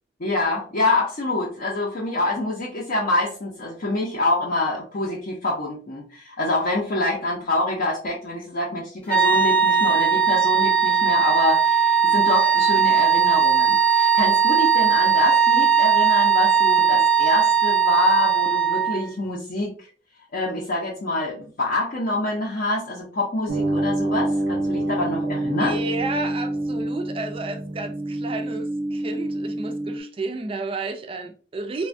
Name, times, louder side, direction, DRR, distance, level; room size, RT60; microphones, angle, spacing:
voice 1, 0.2-19.9 20.3-25.8, left 2 dB, 55° left, 0.6 m, -26 dB
sound 1, 9.1-19.1, right 7 dB, 10° left, 0.7 m, -18 dB
sound 2, 23.5-30.0, right 1 dB, 80° right, 0.6 m, -27 dB
voice 2, 25.6-31.9, right 3 dB, 30° right, 0.4 m, -32 dB
3.2 x 2.2 x 2.5 m
head